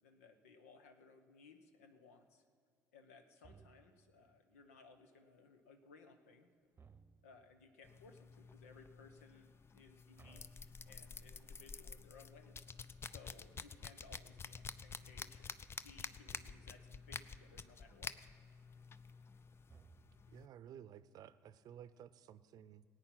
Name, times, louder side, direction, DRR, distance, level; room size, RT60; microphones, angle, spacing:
voice 1, 0.0-2.5 2.9-6.5 7.2-12.6 13.0-18.1, left 4 dB, 85° left, 8 dB, 1.1 m, -62 dB
sound 1, 3.4-4.2 6.7-7.6 10.2-11.3 16.3-17.0 19.7-20.5, right 5 dB, 30° right, 0.9 m, -63 dB
sound 2, 7.8-20.5, left 5 dB, 35° left, 0.6 m, -50 dB
voice 2, 20.3-22.8, right 9 dB, 55° right, 16 dB, 0.6 m, -55 dB
18.0 x 8.8 x 5.9 m, 2.2 s
hypercardioid pair, 60°, 8 cm